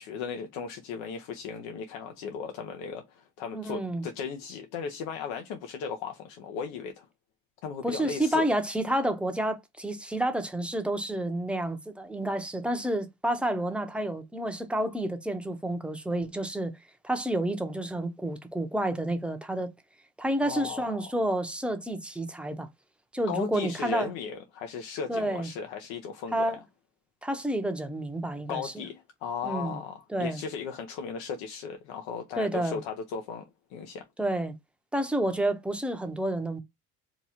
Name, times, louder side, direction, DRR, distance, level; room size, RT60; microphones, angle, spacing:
voice 1, 0.0-7.1 7.6-8.4 20.4-21.1 23.3-26.6 28.5-34.1, left 6 dB, 90° left, 0.7 m, -36 dB
voice 2, 3.5-4.0 7.8-16.8 17.0-19.7 20.2-22.7 23.1-24.1 25.1-25.5 26.3-26.6 27.2-28.8 29.4-29.8 30.1-30.4 32.4-32.8 34.2-34.5 34.9-36.6, right 1 dB, 5° right, 0.6 m, -29 dB
2.9 x 2.3 x 4.1 m
cardioid pair, 105°, 33 cm